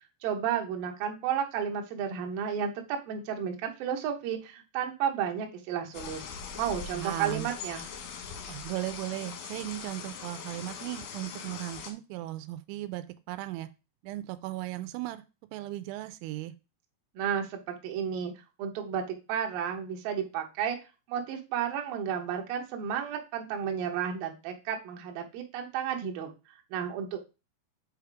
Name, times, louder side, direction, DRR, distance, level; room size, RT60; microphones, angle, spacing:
voice 1, 0.2-6.2 6.6-7.9 17.2-18.3 18.6-20.8 21.1-26.3 26.7-27.2, right 8 dB, 70° right, 3 dB, 2.4 m, -32 dB
sound 1, 5.9-11.9, left 6 dB, 75° left, 2.0 m, -41 dB
voice 2, 6.9-7.5 8.5-13.7 14.0-15.2 15.5-16.5, right 16 dB, 85° right, 12 dB, 2.9 m, -37 dB
7.5 x 3.6 x 4.7 m, 0.29 s
omnidirectional pair, 5.3 m